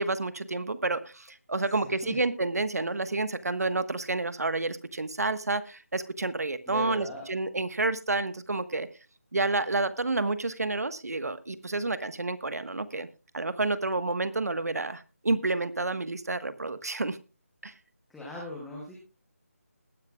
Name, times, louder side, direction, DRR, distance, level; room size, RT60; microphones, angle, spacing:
voice 1, 0.0-8.9 9.3-13.1 13.3-17.2 17.6-17.7, right 3 dB, 85° right, 13 dB, 1.3 m, -29 dB
voice 2, 1.8-2.2 6.7-7.3 18.1-19.0, left 2 dB, ahead, -4 dB, 0.8 m, -39 dB
20.5 x 10.0 x 2.3 m, 0.31 s
figure-of-eight pair, 175°, 8 cm